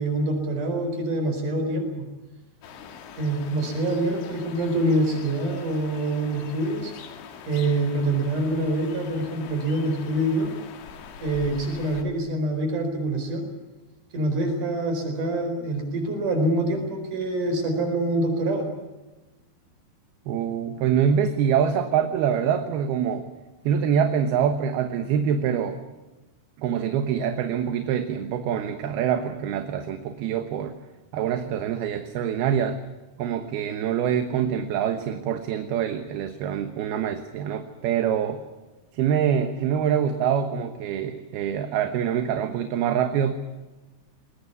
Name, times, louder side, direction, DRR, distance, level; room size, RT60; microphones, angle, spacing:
voice 1, 0.0-2.1 3.2-6.9 7.5-10.5 11.2-13.5 14.1-18.7, right 1 dB, 45° right, 6 dB, 5.8 m, -25 dB
sound 1, 2.6-12.0, left 7 dB, 80° left, 4.2 m, -42 dB
voice 2, 20.3-23.2 23.6-25.8 26.6-30.8 31.1-32.8 33.2-38.4 38.9-43.3, right 8 dB, 70° right, 8 dB, 2.9 m, -25 dB
21.0 x 21.0 x 9.6 m, 1.1 s
omnidirectional pair, 5.1 m